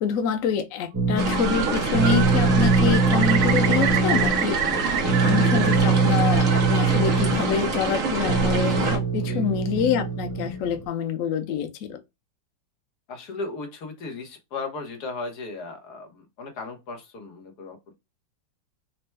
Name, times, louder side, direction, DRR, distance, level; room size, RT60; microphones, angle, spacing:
voice 1, 0.0-4.6 5.2-12.0, left 7 dB, 90° left, 0.7 m, -26 dB
sound 1, 0.9-10.8, right 4 dB, 20° right, 0.5 m, -23 dB
sound 2, 1.2-9.0, right 3 dB, 50° right, 1.2 m, -26 dB
Bird, 1.2-1.8 2.0-5.8 6.1-6.9, right 10 dB, 75° right, 0.9 m, -28 dB
voice 2, 13.1-17.9, left 3 dB, 60° left, 1.4 m, -36 dB
4.4 x 2.2 x 3.1 m
omnidirectional pair, 2.1 m